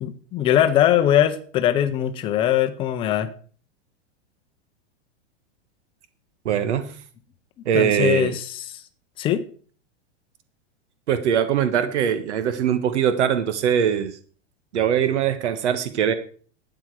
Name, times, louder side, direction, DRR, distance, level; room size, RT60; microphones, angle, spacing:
voice 1, 0.0-3.3 7.7-8.8 9.2-9.4, left 11 dB, 15° left, 8 dB, 0.7 m, -21 dB
voice 2, 6.4-6.9 7.6-8.3 11.1-14.2 14.7-16.1, right 9 dB, 80° right, 11 dB, 1.5 m, -22 dB
12.5 x 9.1 x 4.8 m, 0.44 s
supercardioid pair, 170°, 34 cm